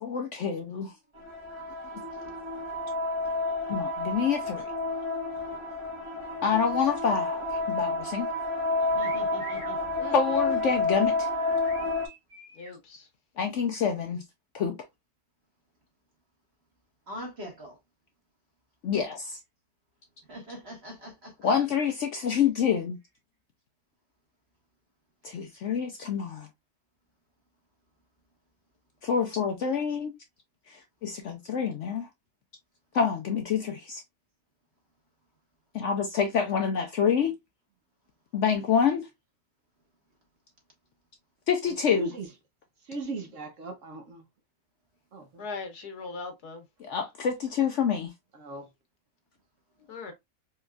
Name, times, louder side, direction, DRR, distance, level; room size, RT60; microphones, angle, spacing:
voice 1, 0.0-0.9 3.7-4.7 6.4-8.3 10.1-11.3 13.4-14.2 14.5-14.8 18.8-19.4 21.4-23.0 25.2-26.5 29.0-30.1 30.7-32.1 32.9-34.0 35.7-37.3 38.3-39.1 41.5-42.1 46.8-48.1, left 7 dB, 65° left, 0.8 m, -27 dB
sound 1, 1.2-12.1, left 2 dB, 20° right, 1.0 m, -30 dB
voice 2, 8.9-9.8 17.1-17.8 20.2-21.3, equal, 40° right, 1.8 m, -42 dB
sound 2, 9.0-9.8 11.3-12.8, right 1 dB, 80° right, 2.1 m, -45 dB
voice 3, 12.6-13.1 45.4-46.6 49.9-50.1, left 4 dB, 80° left, 1.6 m, -39 dB
voice 4, 42.9-44.2 45.1-45.4 48.3-48.7, right 2 dB, 60° right, 1.2 m, -37 dB
4.5 x 3.1 x 2.3 m
omnidirectional pair, 1.6 m